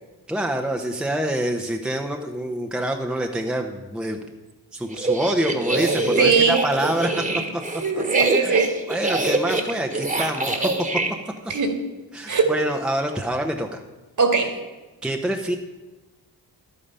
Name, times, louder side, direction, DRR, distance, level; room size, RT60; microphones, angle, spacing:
voice 1, 0.3-4.2 4.7-7.1 8.4-8.6 8.9-10.7 11.4-11.5 12.1-13.8 15.0-15.5, right 1 dB, ahead, 3 dB, 0.9 m, -26 dB
sound 1, 4.9-11.1, right 2 dB, 20° right, 1.6 m, -25 dB
voice 2, 6.2-6.6 7.8-8.7 11.5-11.8 12.3-12.5 14.2-14.6, right 5 dB, 45° right, 6 dB, 2.0 m, -20 dB
11.0 x 8.9 x 5.6 m, 1.2 s
cardioid pair, 75°, 42 cm